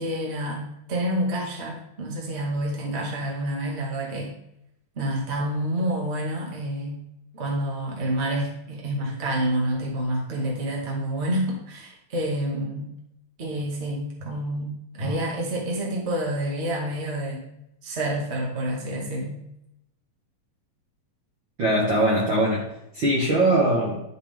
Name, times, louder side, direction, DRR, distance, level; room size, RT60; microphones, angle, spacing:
voice 1, 0.0-4.3 4.9-7.0 7.3-12.9 13.4-17.5 17.8-19.4, right 1 dB, 25° right, -2 dB, 1.7 m, -28 dB
voice 2, 21.6-24.0, right 1 dB, 45° right, -5 dB, 1.9 m, -22 dB
12.0 x 5.7 x 3.6 m, 0.81 s
omnidirectional pair, 3.8 m